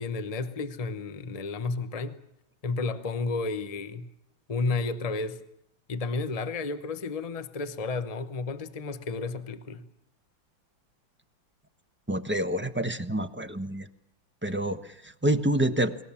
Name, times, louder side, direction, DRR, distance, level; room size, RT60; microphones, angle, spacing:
voice 1, 0.0-2.2 2.6-4.1 4.5-5.4 5.9-9.8, left 3 dB, 35° left, 0.6 m, -32 dB
voice 2, 12.1-13.9 14.4-16.0, right 1 dB, 10° right, 0.7 m, -28 dB
29.5 x 21.0 x 7.2 m
omnidirectional pair, 2.2 m